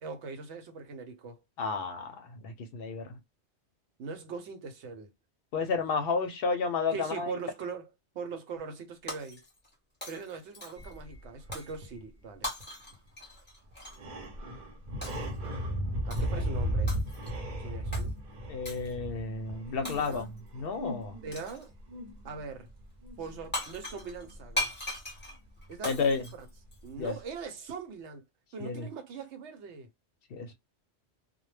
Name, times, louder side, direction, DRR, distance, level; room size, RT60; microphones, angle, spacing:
voice 1, 0.0-1.4 4.0-5.1 6.9-7.9 8.1-9.4 10.1-12.5 16.0-17.0 17.6-18.1 19.7-20.3 21.2-21.7 22.2-22.7 23.2-24.7 25.7-26.5 26.8-28.2 28.5-29.9, right 5 dB, 90° right, 1.0 m, -41 dB
voice 2, 1.6-3.2 5.5-7.4 18.5-21.2 25.8-26.3 27.0-27.1 28.6-28.9 30.3-30.5, left 4 dB, 65° left, 0.7 m, -32 dB
Shatter, 9.1-9.7 10.0-11.0 11.5-11.8 12.4-14.0 15.0-15.3 16.1-16.4 16.9-17.4 17.9-18.1 18.6-18.9 19.8-20.4 21.3-21.7 23.2-23.3 23.5-27.1, left 1 dB, 10° left, 0.9 m, -39 dB
sound 1, 10.8-12.0 12.6-12.7 12.9-13.0 13.7-25.2 25.6-25.7, equal, 50° right, 0.7 m, -36 dB
2.1 x 2.1 x 3.1 m
omnidirectional pair, 1.1 m